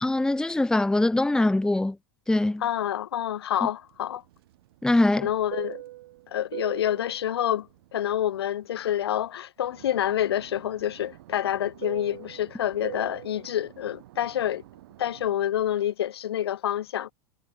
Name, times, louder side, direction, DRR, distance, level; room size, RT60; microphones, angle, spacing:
voice 1, 0.0-2.0 2.3-2.6 4.8-5.3, left 2 dB, 5° left, 0.8 m, -22 dB
voice 2, 2.6-4.2 5.2-5.8 6.3-14.6 15.0-17.1, left 11 dB, 85° left, 3.1 m, -28 dB
Fixed-wing aircraft airplane, 3.9-9.3 9.6-15.5, right 16 dB, 75° right, 4.3 m, -43 dB
hypercardioid pair, 100°, 13 cm